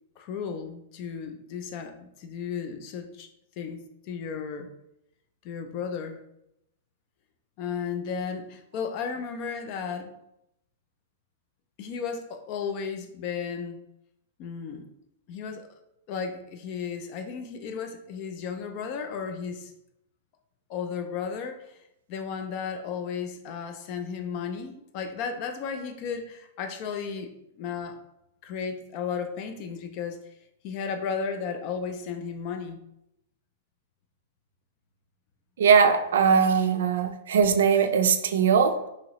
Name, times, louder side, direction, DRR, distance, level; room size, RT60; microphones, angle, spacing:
voice 1, 0.2-3.3 3.6-4.7 5.4-6.2 7.6-10.1 11.8-13.8 14.4-14.9 15.3-15.7 16.1-19.7 20.7-21.8 22.1-28.0 28.4-30.2 30.6-32.8, left 6 dB, 35° left, 7 dB, 0.3 m, -34 dB
voice 2, 35.6-38.9, right 6 dB, 75° right, 8 dB, 0.3 m, -20 dB
2.8 x 2.8 x 2.9 m, 0.82 s
supercardioid pair, 165°, 0 cm